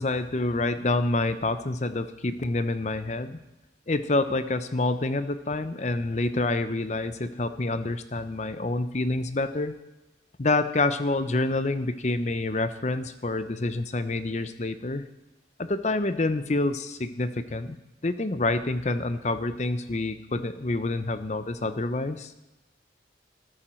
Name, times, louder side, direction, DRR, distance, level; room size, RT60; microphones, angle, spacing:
voice 1, 0.0-3.4 3.9-9.7 10.4-15.0 15.6-17.8 18.0-22.3, left 2 dB, 40° left, 11 dB, 0.7 m, -27 dB
14.0 x 13.0 x 4.5 m, 1.0 s
head